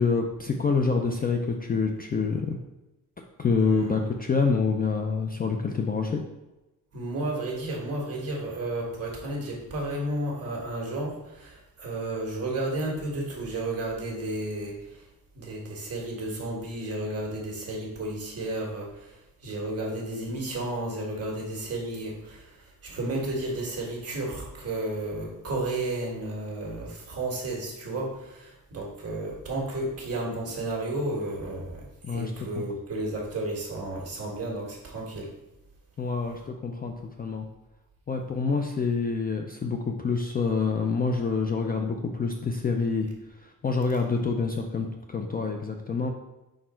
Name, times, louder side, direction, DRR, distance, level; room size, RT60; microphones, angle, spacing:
voice 1, 0.0-2.6 3.4-6.2 32.0-32.6 36.0-37.5 38.1-46.1, left 4 dB, 25° left, 3 dB, 0.4 m, -27 dB
voice 2, 3.6-4.1 6.9-15.1 15.3-35.3, right 2 dB, 40° right, -2 dB, 1.7 m, -32 dB
5.1 x 4.3 x 4.4 m, 1.0 s
wide cardioid pair, 165°, 36 cm